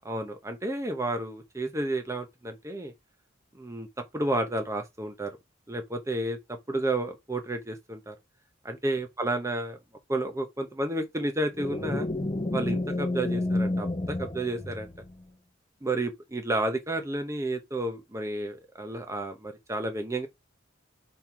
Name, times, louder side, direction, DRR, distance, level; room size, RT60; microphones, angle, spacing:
voice 1, 0.0-2.9 3.5-3.9 4.1-5.3 5.7-8.2 8.6-9.8 10.1-12.1 12.5-14.9 15.8-20.3, right 1 dB, 15° right, 0.9 m, -31 dB
sound 1, 11.6-15.2, left 2 dB, 25° left, 0.9 m, -30 dB
5.6 x 4.5 x 4.7 m
head